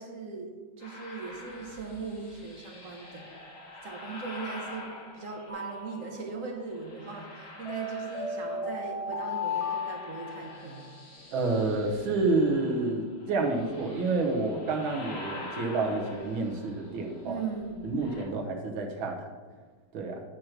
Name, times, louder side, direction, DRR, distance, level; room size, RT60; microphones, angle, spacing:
voice 1, 0.0-3.3 3.8-10.9 17.3-18.0, right 4 dB, 50° right, 1 dB, 1.0 m, -39 dB
sound 1, 0.8-6.1 6.7-8.9 9.1-18.2, left 2 dB, 70° left, 2.2 m, -46 dB
sound 2, 5.5-6.5 7.6-10.9, left 3 dB, 20° left, 1.2 m, -35 dB
voice 2, 11.3-17.4 17.8-19.3 19.9-20.2, right 3 dB, 80° right, 2 dB, 1.8 m, -29 dB
9.0 x 3.0 x 6.4 m, 1.4 s
omnidirectional pair, 2.2 m